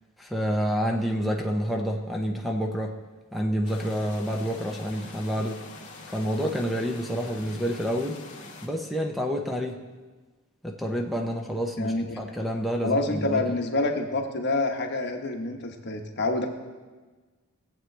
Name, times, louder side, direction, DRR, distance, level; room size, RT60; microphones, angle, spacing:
voice 1, 0.2-3.0 3.3-5.6 6.1-8.2 8.6-9.8 10.6-13.4, equal, ahead, 0 dB, 0.7 m, -28 dB
sound 1, 3.6-8.7, left 3 dB, 35° left, 2.1 m, -44 dB
voice 2, 11.8-12.2 12.8-16.5, left 2 dB, 50° left, 3 dB, 1.2 m, -27 dB
19.0 x 7.7 x 3.3 m, 1.3 s
head